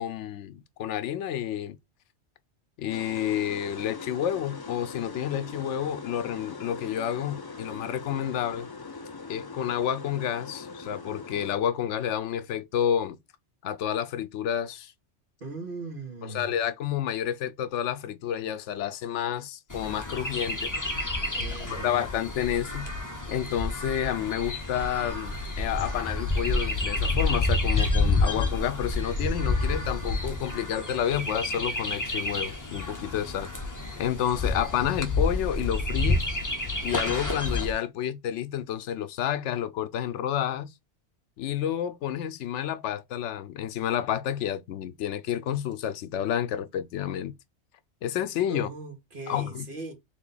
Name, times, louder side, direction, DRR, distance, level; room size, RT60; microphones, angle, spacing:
voice 1, 0.0-1.8 2.8-8.7 9.3-13.2 13.6-14.9 16.2-20.7 21.7-22.9 23.3-33.5 34.0-36.4 36.8-40.7 41.4-47.3 48.0-48.7 49.3-49.7, left 10 dB, 85° left, 0.9 m, -30 dB
sound 1, 2.9-11.6, left 4 dB, 35° left, 0.3 m, -41 dB
voice 2, 15.4-16.5 21.3-22.0 48.5-49.9, right 3 dB, 50° right, 1.7 m, -39 dB
Chirp tweet, 19.7-37.7, left 2 dB, 20° left, 0.8 m, -29 dB
3.7 x 3.0 x 3.9 m
omnidirectional pair, 1.2 m